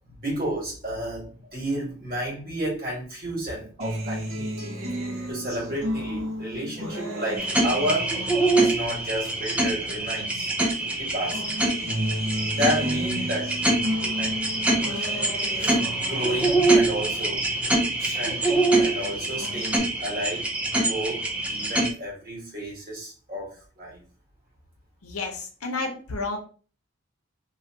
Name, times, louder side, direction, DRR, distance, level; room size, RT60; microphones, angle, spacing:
voice 1, 0.0-4.7 5.1-8.2 8.5-11.4 12.5-13.6 14.0-14.4 14.7-15.3 15.6-17.4 18.0-20.5 20.8-24.0, equal, 40° right, -5 dB, 1.6 m, -32 dB
Acoustic guitar, 3.8-10.4 10.8-18.4 18.8-19.8, equal, 70° right, 1.0 m, -34 dB
sound 1, 7.4-21.9, right 2 dB, 5° right, 0.3 m, -25 dB
voice 2, 25.0-26.4, left 3 dB, 80° left, 3 dB, 0.8 m, -31 dB
2.9 x 2.5 x 2.8 m, 0.39 s
head